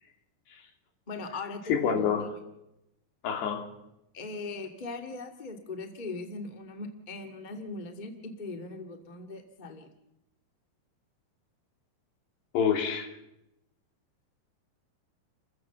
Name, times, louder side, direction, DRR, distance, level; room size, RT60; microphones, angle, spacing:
voice 1, 1.1-2.3 4.1-9.9, left 3 dB, 35° left, 5 dB, 0.7 m, -40 dB
voice 2, 1.7-2.3 3.2-3.7 12.5-13.1, left 7 dB, 75° left, 4 dB, 4.7 m, -27 dB
30.0 x 15.0 x 7.2 m, 0.89 s
omnidirectional pair, 4.8 m